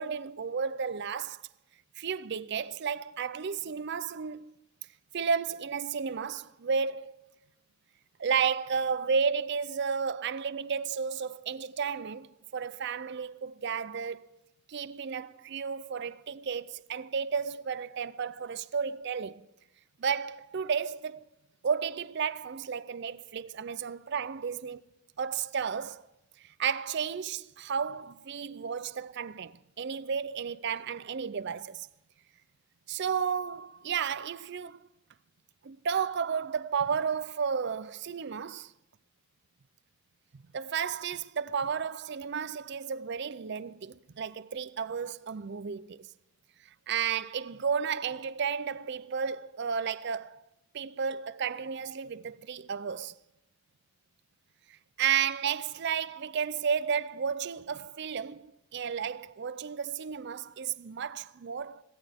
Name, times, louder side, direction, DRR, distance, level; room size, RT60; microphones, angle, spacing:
voice 1, 0.0-1.4 2.0-4.5 5.1-7.2 8.2-14.3 14.7-19.5 20.0-21.2 21.6-24.8 25.2-26.0 26.4-31.9 32.9-34.8 35.6-38.7 40.3-46.1 46.9-50.4 50.7-53.1 55.0-61.8, right 6 dB, 50° right, 0.5 m, -32 dB
22.0 x 16.0 x 3.5 m
head